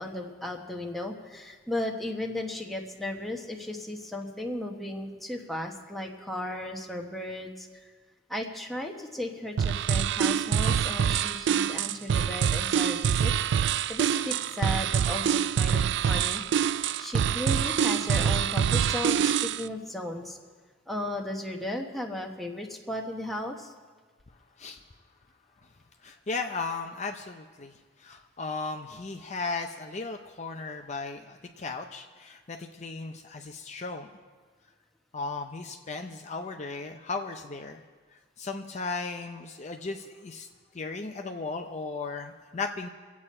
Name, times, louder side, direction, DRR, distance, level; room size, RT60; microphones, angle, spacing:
voice 1, 0.0-7.8 8.3-13.3 13.6-16.4 17.0-20.4 20.9-23.7, left 1 dB, ahead, 0 dB, 1.2 m, -35 dB
sound 1, 9.6-19.7, right 8 dB, 65° right, 0.3 m, -25 dB
voice 2, 26.0-27.7 28.0-34.1 35.1-37.8 38.4-40.5 40.7-42.9, left 3 dB, 40° left, 4 dB, 0.7 m, -36 dB
24.5 x 8.5 x 4.3 m, 1.5 s
head